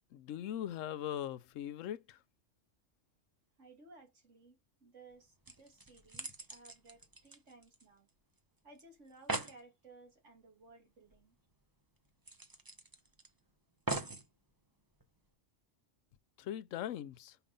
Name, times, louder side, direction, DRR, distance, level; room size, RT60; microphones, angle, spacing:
voice 1, 0.1-2.2 16.4-17.4, left 11 dB, 80° left, 1.0 m, -40 dB
voice 2, 3.6-8.1 8.6-11.4, right 3 dB, 70° right, 2.6 m, -59 dB
sound 1, 5.1-5.2 5.5-8.1 8.4-8.5 8.8-8.9 9.1-9.6 11.1-11.2 11.5-11.6 12.3-13.3 13.9-14.3 15.0-15.1, right 3 dB, 20° right, 0.7 m, -41 dB
5.7 x 5.0 x 5.3 m
omnidirectional pair, 1.3 m